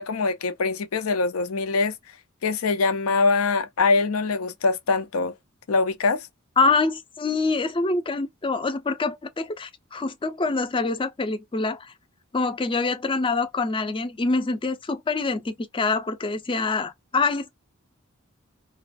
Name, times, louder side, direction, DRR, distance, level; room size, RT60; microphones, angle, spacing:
voice 1, 0.0-1.9 2.4-5.3 5.7-6.3, left 4 dB, 90° left, 0.5 m, -23 dB
voice 2, 6.6-11.9 12.3-17.5, left 3 dB, 25° left, 0.5 m, -25 dB
2.4 x 2.2 x 2.5 m
head